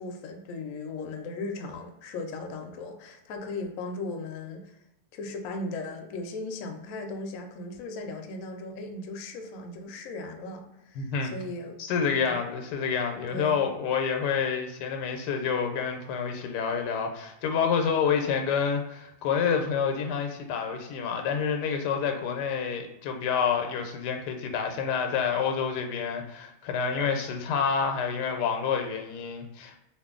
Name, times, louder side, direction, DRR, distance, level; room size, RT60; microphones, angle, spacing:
voice 1, 0.0-4.8 5.1-11.8 12.2-12.4 13.3-13.7, left 2 dB, 70° left, 3 dB, 0.9 m, -37 dB
voice 2, 11.0-11.3 11.8-29.8, left 6 dB, 85° left, 4 dB, 1.2 m, -28 dB
2.6 x 2.5 x 3.6 m, 0.87 s
omnidirectional pair, 1.7 m